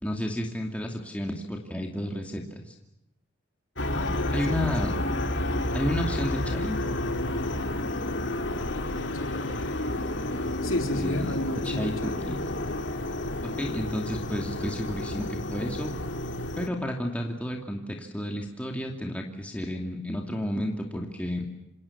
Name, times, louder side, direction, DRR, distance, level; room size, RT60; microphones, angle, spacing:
voice 1, 0.0-2.7 4.3-5.0 5.7-6.8 10.9-11.4 11.6-12.4 13.4-15.9 16.6-21.5, equal, 5° left, 1 dB, 2.6 m, -32 dB
sound 1, 3.8-16.7, left 1 dB, 60° left, 2.7 m, -30 dB
voice 2, 3.9-4.7 9.1-9.5 10.6-12.2, left 1 dB, 75° left, 4 dB, 3.4 m, -33 dB
28.0 x 27.0 x 7.3 m, 0.83 s
head